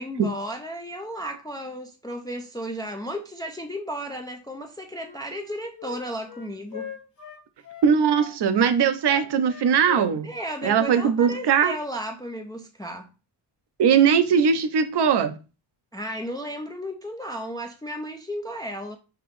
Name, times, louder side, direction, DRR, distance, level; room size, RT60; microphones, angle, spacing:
voice 1, 0.0-6.9 10.2-13.1 15.9-19.0, equal, 10° left, 0.4 m, -34 dB
Wind instrument woodwind instrument, 4.9-8.3 8.6-11.9, left 9 dB, 50° left, 1.5 m, -41 dB
voice 2, 7.8-10.3 10.6-11.7 13.8-15.3, right 7 dB, 60° right, 0.7 m, -20 dB
5.7 x 2.9 x 3.1 m
wide cardioid pair, 160°, 47 cm